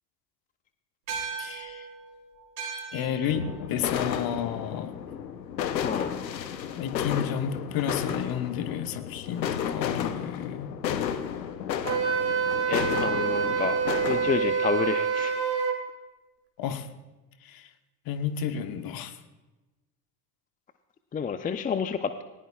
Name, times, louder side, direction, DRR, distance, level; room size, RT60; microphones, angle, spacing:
sound 1, 1.1-5.8, right 6 dB, 80° right, 3.8 m, -40 dB
voice 1, 1.4-1.9 2.9-4.9 6.8-10.7 16.6-16.9 17.4-17.7 18.0-19.2, left 8 dB, 45° left, 8 dB, 1.3 m, -31 dB
sound 2, 3.3-14.4, left 8 dB, 85° left, 0.9 m, -32 dB
Wind instrument woodwind instrument, 11.8-15.8, right 6 dB, 25° right, 2.4 m, -26 dB
voice 2, 12.7-13.8 14.0-15.4 21.1-22.2, left 6 dB, 15° left, 10 dB, 0.5 m, -29 dB
19.0 x 18.5 x 2.4 m, 1.1 s
hypercardioid pair, 75°, 50 cm